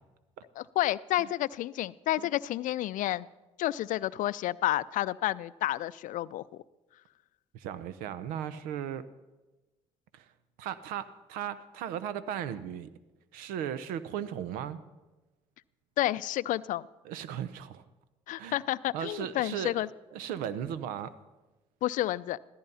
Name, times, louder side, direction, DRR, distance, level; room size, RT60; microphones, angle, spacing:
voice 1, 0.6-3.3 3.6-6.4 16.0-16.9 18.3-19.9 21.8-22.4, left 14 dB, 65° left, 18 dB, 0.5 m, -30 dB
voice 2, 7.5-9.0 10.1-10.2 10.6-12.9 13.3-14.8 17.0-17.8 18.4-18.6 18.9-21.1, right 9 dB, 75° right, 14 dB, 0.8 m, -36 dB
15.0 x 14.0 x 5.6 m, 1.1 s
hypercardioid pair, 50°, 15 cm